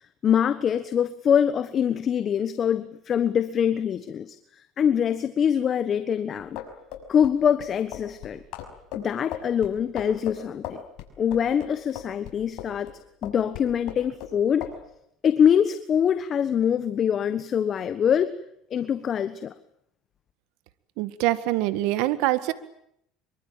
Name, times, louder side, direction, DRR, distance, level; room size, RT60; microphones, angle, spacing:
voice 1, 0.2-4.4 4.8-6.6 7.1-8.4 8.9-10.8 11.2-12.9 13.2-14.7 15.2-18.3 18.7-19.5, left 8 dB, 40° left, 1.3 m, -24 dB
sound 1, 6.4-12.9 13.2-14.3 14.6-14.8, left 10 dB, 65° left, 6.0 m, -37 dB
voice 2, 21.0-22.5, right 16 dB, 75° right, 1.8 m, -24 dB
25.5 x 24.0 x 9.0 m
supercardioid pair, 115°, 0 cm